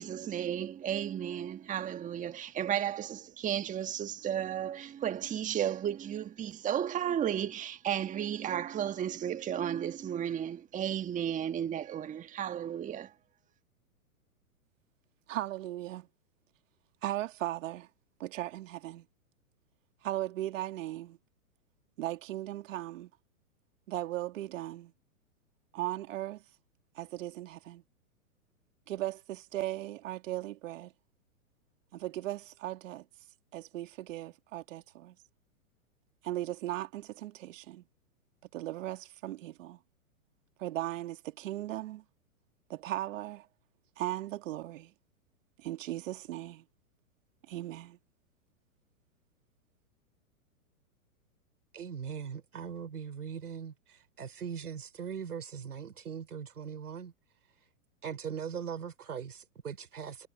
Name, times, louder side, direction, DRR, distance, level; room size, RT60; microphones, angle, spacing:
voice 1, 0.0-13.1, right 9 dB, 15° right, 1.6 m, -33 dB
voice 2, 15.3-16.1 17.0-17.9 18.2-19.1 20.0-21.2 22.0-23.1 23.9-24.9 25.7-26.4 26.9-27.8 28.9-30.9 31.9-33.1 33.5-35.2 36.2-37.8 38.5-39.8 40.6-42.0 42.7-43.5 44.0-44.9 45.6-46.6 47.5-48.0, right 14 dB, 60° right, 2.5 m, -37 dB
voice 3, 51.7-57.1 58.0-60.3, right 7 dB, 90° right, 3.6 m, -40 dB
hypercardioid pair, 125°, 43 cm